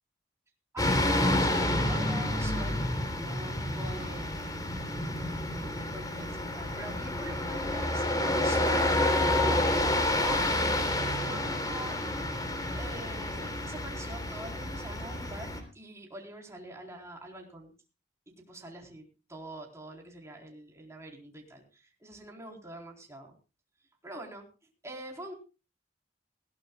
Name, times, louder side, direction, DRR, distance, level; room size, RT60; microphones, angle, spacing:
voice 1, 0.7-4.6 5.5-10.4 11.1-12.0 12.7-17.7 18.4-23.3 24.0-24.4 24.8-25.3, right 1 dB, 15° right, 0 dB, 4.1 m, -44 dB
sound 1, 0.8-15.6, left 1 dB, 20° left, 3.5 m, -29 dB
20.5 x 17.0 x 2.3 m, 0.32 s
head